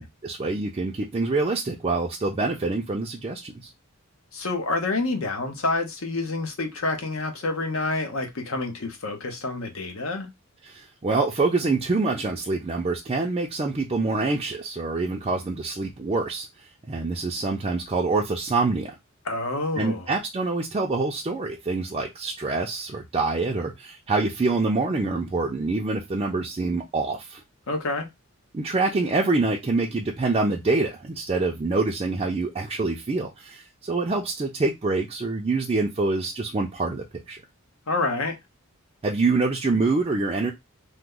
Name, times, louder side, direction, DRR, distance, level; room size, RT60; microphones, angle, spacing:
voice 1, 0.0-3.7 10.6-16.5 16.9-19.0 19.8-27.4 28.5-37.4 39.0-40.5, right 3 dB, 25° right, 0.4 m, -26 dB
voice 2, 4.3-10.3 19.2-20.1 27.7-28.1 37.9-38.3, left 2 dB, 70° left, 0.8 m, -28 dB
2.9 x 2.0 x 3.5 m
head